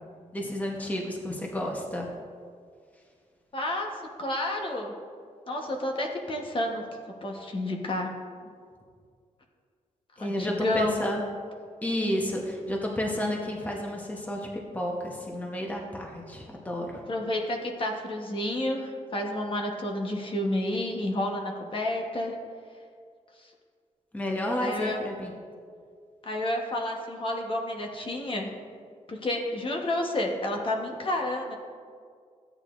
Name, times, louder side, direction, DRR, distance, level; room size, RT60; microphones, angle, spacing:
voice 1, 0.3-2.1 10.2-11.2 11.8-17.0 24.1-25.3, left 1 dB, 10° left, 0 dB, 0.9 m, -31 dB
voice 2, 3.5-3.9 4.2-4.9 5.5-6.8 7.2-8.1 10.2-11.0 17.1-22.4 23.4-23.5 24.6-25.0 26.2-28.5 29.1-31.6, left 1 dB, 40° left, 1 dB, 1.0 m, -30 dB
14.0 x 8.9 x 2.5 m, 2.1 s
wide cardioid pair, 145°, 14 cm